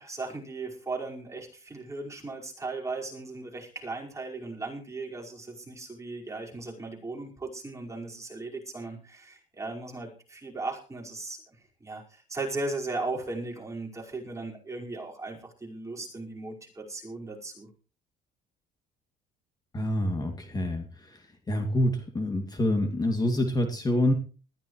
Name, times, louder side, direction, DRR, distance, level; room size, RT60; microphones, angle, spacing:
voice 1, 0.0-11.4 11.8-17.7, right 3 dB, 15° right, -2 dB, 5.2 m, -37 dB
voice 2, 19.7-21.2 21.5-24.1, left 1 dB, 25° left, 4 dB, 2.6 m, -27 dB
19.5 x 14.5 x 3.2 m, 0.38 s
cardioid pair, 110°, 17 cm